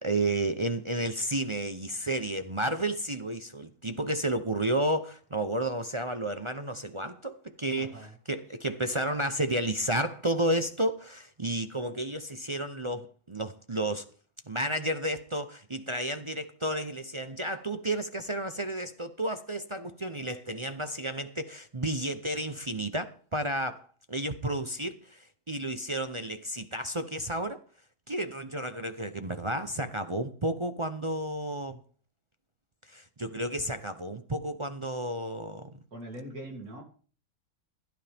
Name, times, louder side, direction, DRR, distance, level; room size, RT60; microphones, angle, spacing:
voice 1, 0.0-14.1 14.5-27.6 28.1-31.8 32.8-35.8, right 1 dB, 30° right, 0.6 m, -32 dB
voice 2, 7.8-8.1 35.9-36.8, right 1 dB, 70° right, 3.5 m, -41 dB
16.5 x 12.5 x 3.5 m
omnidirectional pair, 1.6 m